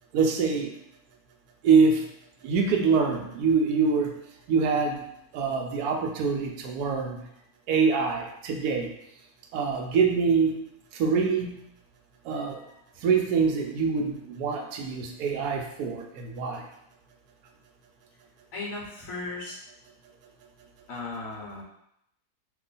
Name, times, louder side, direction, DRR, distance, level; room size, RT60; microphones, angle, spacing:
voice 1, 0.1-0.7 1.6-2.0 2.4-4.2 4.5-5.0 5.3-7.2 7.7-8.9 9.5-10.5 11.0-11.6 12.3-12.6 13.0-16.6, right 5 dB, 80° right, 2 dB, 1.1 m, -24 dB
voice 2, 18.5-19.6 20.9-21.6, left 3 dB, 65° left, -3 dB, 1.1 m, -36 dB
3.0 x 2.4 x 3.9 m, 0.77 s
omnidirectional pair, 1.6 m